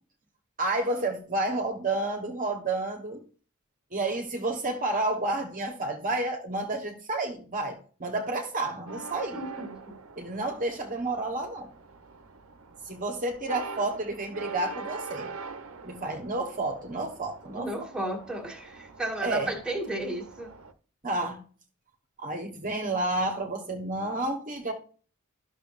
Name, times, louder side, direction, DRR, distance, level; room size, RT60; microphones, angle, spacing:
voice 1, 0.6-3.2 3.9-9.4 10.2-11.7 12.9-15.3 15.8-17.9 19.2-19.5 21.0-21.4 22.2-24.7, right 2 dB, 40° right, 1.2 m, -30 dB
sound 1, 8.9-20.7, right 4 dB, 70° right, 0.9 m, -44 dB
voice 2, 9.3-9.9 17.5-20.5, right 1 dB, 5° right, 1.8 m, -34 dB
12.5 x 6.4 x 2.5 m
head